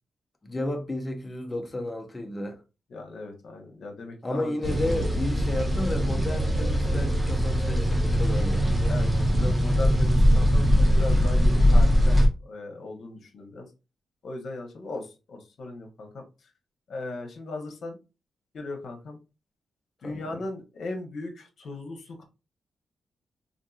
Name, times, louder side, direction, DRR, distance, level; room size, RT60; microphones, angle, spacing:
voice 1, 0.4-2.6 4.2-8.6 20.0-20.4, left 1 dB, 20° left, 0.6 m, -32 dB
voice 2, 2.9-4.5 4.8-5.0 8.9-13.7 14.2-16.2 16.9-18.0 18.5-19.2 20.0-22.2, left 2 dB, 65° left, 0.8 m, -38 dB
sound 1, 4.6-12.3, equal, 20° right, 0.8 m, -21 dB
3.6 x 2.6 x 2.3 m
wide cardioid pair, 135°, 0 cm